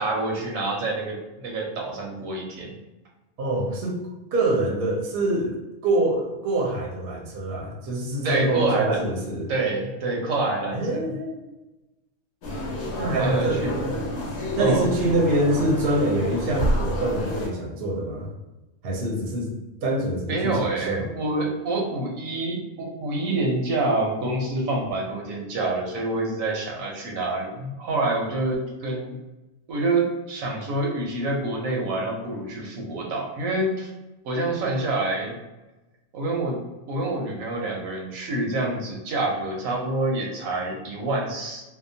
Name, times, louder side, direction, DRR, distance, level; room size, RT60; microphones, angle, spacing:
voice 1, 0.0-2.7 8.2-9.0 9.5-11.1 13.1-13.7 14.6-14.9 20.3-29.2 29.7-33.9 34.2-35.4 36.1-36.6 36.9-41.6, right 2 dB, 80° right, -1 dB, 1.0 m, -27 dB
voice 2, 3.4-4.0 4.3-5.6 5.8-9.5 10.7-11.4 13.0-14.0 14.6-18.3 18.8-19.5 19.8-21.1, right 1 dB, 60° right, -2 dB, 0.7 m, -25 dB
sound 1, 12.4-17.5, equal, 75° left, 1.1 m, -29 dB
2.7 x 2.0 x 2.6 m, 1.0 s
omnidirectional pair, 1.4 m